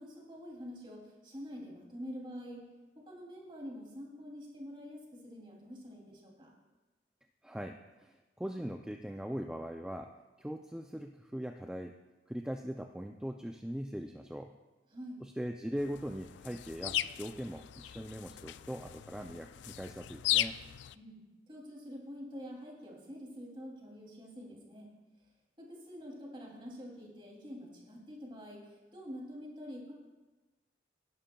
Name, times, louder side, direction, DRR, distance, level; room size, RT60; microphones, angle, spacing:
voice 1, 0.0-2.7 2.9-6.5 14.9-15.2 20.9-24.9 25.6-29.9, equal, 30° right, -2 dB, 2.8 m, -46 dB
voice 2, 7.4-10.1 10.4-11.9 12.3-14.5 15.2-20.6, equal, 5° right, 4 dB, 0.3 m, -40 dB
sound 1, 15.8-21.0, left 13 dB, 85° left, 0.3 m, -37 dB
18.5 x 11.0 x 2.3 m, 1.2 s
head